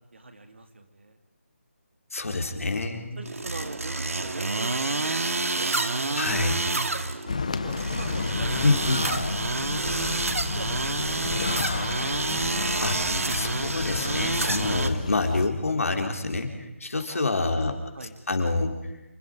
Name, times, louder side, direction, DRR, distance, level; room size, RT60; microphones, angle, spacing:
voice 1, 0.1-1.2 2.3-2.6 3.2-5.2 5.5-7.3 7.6-8.6 8.9-10.1 10.5-10.8 17.0-18.2, right 2 dB, 60° right, 6 dB, 2.9 m, -42 dB
voice 2, 2.1-3.2 6.2-6.6 8.6-9.1 12.8-13.0 13.3-17.7 18.3-18.7, left 3 dB, 90° left, 4 dB, 4.1 m, -27 dB
sound 1, 3.2-14.9, right 3 dB, 85° right, 2.1 m, -28 dB
sound 2, 7.3-15.5, left 4 dB, 30° left, 0.9 m, -32 dB
27.5 x 24.0 x 5.2 m, 1.0 s
hypercardioid pair, 180°, 7 cm